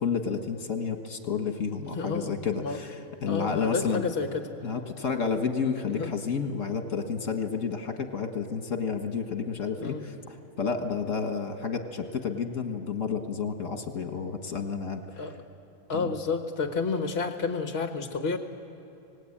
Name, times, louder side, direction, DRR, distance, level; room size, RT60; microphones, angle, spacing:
voice 1, 0.0-4.1 4.6-15.3 15.9-16.1, left 5 dB, 65° left, 5 dB, 1.9 m, -31 dB
voice 2, 1.9-2.8 3.3-4.5 5.9-6.1 9.8-10.0 15.2-15.3 15.9-18.4, left 4 dB, 50° left, 5 dB, 1.5 m, -30 dB
27.0 x 19.5 x 8.8 m, 2.6 s
omnidirectional pair, 1.4 m